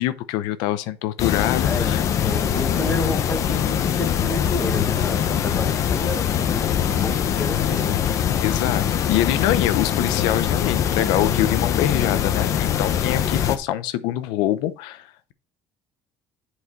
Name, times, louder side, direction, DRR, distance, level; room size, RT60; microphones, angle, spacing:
voice 1, 0.0-2.0 8.4-15.3, left 13 dB, 90° left, 0.7 m, -24 dB
sound 1, 1.2-13.6, left 9 dB, 45° left, 0.8 m, -22 dB
voice 2, 1.6-2.0 2.2-8.0, left 2 dB, 15° left, 1.5 m, -30 dB
8.3 x 4.9 x 4.1 m
cardioid pair, 145°, 7 cm